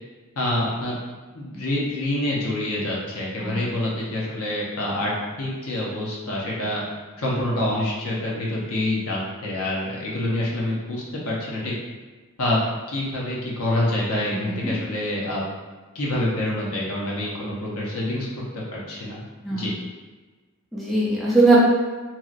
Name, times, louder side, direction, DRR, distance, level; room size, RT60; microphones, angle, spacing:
voice 1, 0.4-1.0 1.3-6.8 7.2-11.7 12.4-12.6 12.9-15.4 15.9-18.3 18.7-19.2 19.5-19.7, left 1 dB, 70° left, -4 dB, 0.7 m, -26 dB
voice 2, 20.7-21.6, right 2 dB, ahead, -7 dB, 0.5 m, -19 dB
2.9 x 2.8 x 2.4 m, 1.3 s
head